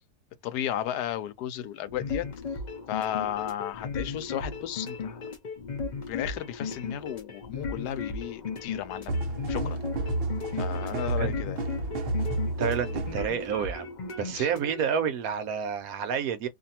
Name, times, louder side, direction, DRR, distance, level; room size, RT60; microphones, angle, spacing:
voice 1, 0.4-2.3 2.9-5.3 6.1-9.8 10.5-11.6 14.3-14.5, left 11 dB, 90° left, 1.2 m, -34 dB
sound 1, 1.9-14.8, left 4 dB, 60° left, 0.4 m, -36 dB
sound 2, 9.1-13.3, right 2 dB, 50° right, 0.7 m, -31 dB
voice 2, 12.6-13.9 14.2-16.5, right 7 dB, 70° right, 1.0 m, -29 dB
2.6 x 2.6 x 2.7 m
omnidirectional pair, 1.7 m